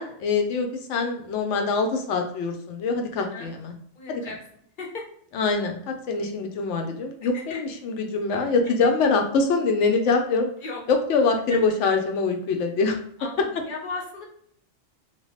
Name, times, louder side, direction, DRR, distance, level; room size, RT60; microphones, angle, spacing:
voice 1, 0.0-3.7 4.1-4.2 5.3-5.8 6.1-10.5 10.9-13.0, left 4 dB, 85° left, 4 dB, 0.9 m, -24 dB
voice 2, 3.2-3.5 4.0-4.4 4.8-5.1 7.3-7.6 8.3-8.4 10.6-10.8 11.5-11.6 13.2-14.2, left 3 dB, 50° left, -1 dB, 0.8 m, -36 dB
2.9 x 2.3 x 3.1 m, 0.65 s
omnidirectional pair, 1.2 m